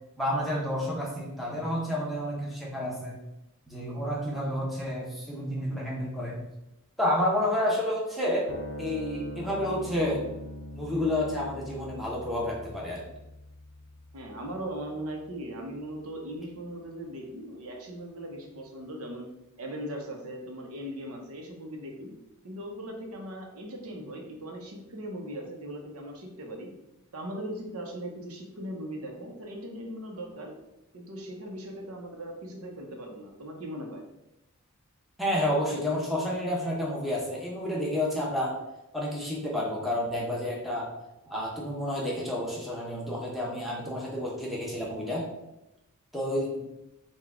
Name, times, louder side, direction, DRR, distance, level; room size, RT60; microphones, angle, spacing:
voice 1, 0.2-3.2 3.7-6.4 7.0-8.5 8.8-10.2 10.7-13.1 35.2-38.6 38.9-40.9 41.3-45.3 46.1-46.6, left 1 dB, ahead, -5 dB, 0.9 m, -30 dB
sound 1, 8.5-15.1, equal, 90° left, 0.6 m, -42 dB
voice 2, 14.1-19.3 19.6-22.1 22.4-26.7 27.1-30.5 30.9-34.0, right 1 dB, 85° right, 1 dB, 0.8 m, -39 dB
4.8 x 2.3 x 3.7 m, 0.92 s
head